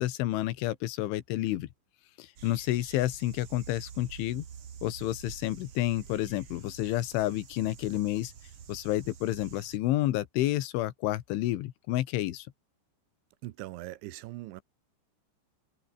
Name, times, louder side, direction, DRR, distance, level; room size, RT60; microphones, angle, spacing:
voice 1, 0.0-1.7 2.2-4.5 4.8-8.3 8.7-12.5, left 15 dB, 85° left, 3.8 m, -30 dB
sound 1, 2.4-9.8, right 8 dB, 45° right, 2.1 m, -48 dB
voice 2, 13.4-14.6, right 17 dB, 80° right, 3.4 m, -41 dB
omnidirectional pair, 5.4 m